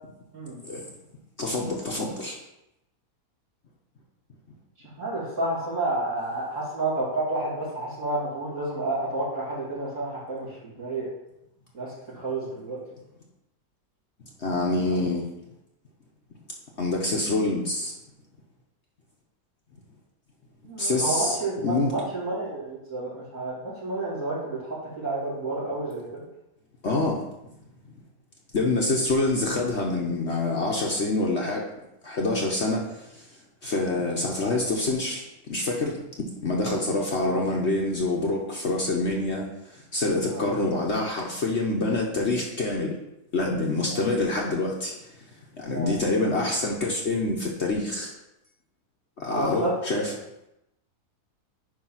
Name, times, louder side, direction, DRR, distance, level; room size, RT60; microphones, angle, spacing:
voice 1, 1.4-2.4 14.4-15.2 16.8-17.9 20.8-21.9 26.8-27.2 28.5-31.7 32.0-33.2 33.6-36.0 36.4-43.0 43.3-44.9 45.5-48.1 49.2-50.1, left 2 dB, 50° left, -1 dB, 1.1 m, -26 dB
voice 2, 5.0-11.1 11.7-12.8 14.9-15.0 20.6-23.6 23.8-26.3 37.2-37.4 40.3-40.5 43.9-44.1 45.7-46.0 49.3-49.8, right 2 dB, 50° right, -7 dB, 3.4 m, -30 dB
9.8 x 3.5 x 5.7 m, 0.87 s
omnidirectional pair, 1.7 m